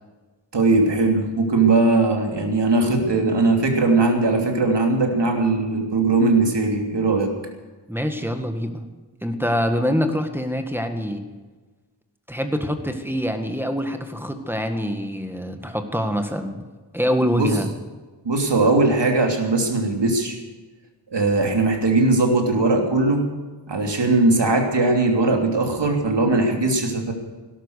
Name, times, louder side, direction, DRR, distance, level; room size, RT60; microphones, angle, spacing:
voice 1, 0.5-7.3 17.3-17.6 18.2-20.4 21.1-23.3 23.7-27.1, right 3 dB, 70° right, 2 dB, 3.1 m, -19 dB
voice 2, 7.9-8.8 9.2-11.2 12.3-16.6 16.9-17.7, equal, 5° right, 5 dB, 1.8 m, -25 dB
18.0 x 12.5 x 6.6 m, 1.3 s
wide cardioid pair, 75°, 44 cm